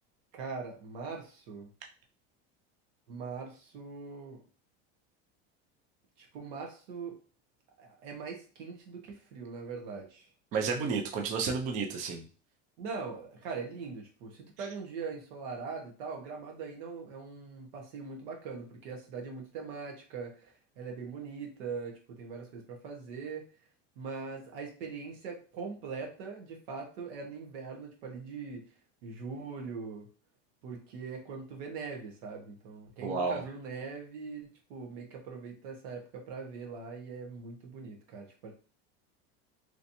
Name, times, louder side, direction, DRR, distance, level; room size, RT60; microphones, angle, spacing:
voice 1, 0.3-1.7 3.1-4.4 6.2-7.2 7.8-10.3 12.8-23.5 24.0-28.7 29.0-30.1 30.6-38.5, right 5 dB, 85° right, 1 dB, 1.1 m, -41 dB
voice 2, 10.5-12.2 33.0-33.4, right 5 dB, 25° right, 2 dB, 0.3 m, -31 dB
3.1 x 2.8 x 2.6 m, 0.38 s
cardioid pair, 170°, 31 cm